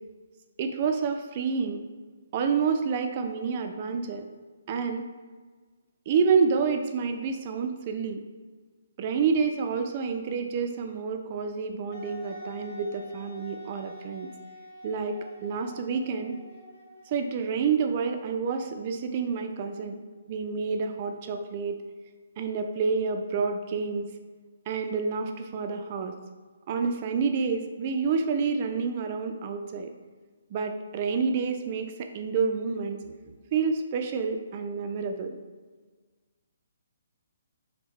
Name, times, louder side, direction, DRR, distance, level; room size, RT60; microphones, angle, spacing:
voice 1, 0.6-1.8 2.3-4.2 4.7-5.0 6.1-8.2 9.0-14.3 14.8-16.4 17.1-20.0 20.3-21.8 22.4-24.1 24.7-26.1 26.7-29.9 30.5-33.1 33.5-35.4, right 5 dB, 35° right, 6 dB, 0.3 m, -28 dB
Wind instrument woodwind instrument, 11.9-17.5, left 2 dB, 25° left, 1.2 m, -47 dB
3.7 x 2.1 x 4.0 m, 1.4 s
hypercardioid pair, 160°, 0 cm